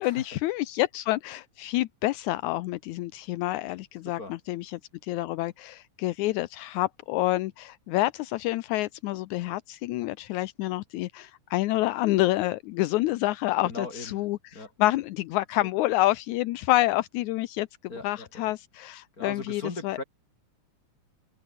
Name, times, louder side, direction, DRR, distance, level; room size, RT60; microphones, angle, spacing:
voice 1, 0.0-4.2 4.5-17.7 18.0-20.0, left 17 dB, 80° left, 2.1 m, -28 dB
voice 2, 13.6-14.3 14.5-14.7 15.6-15.7 17.9-18.5 19.2-20.0, left 2 dB, 25° left, 7.1 m, -39 dB
open air
omnidirectional pair, 3.4 m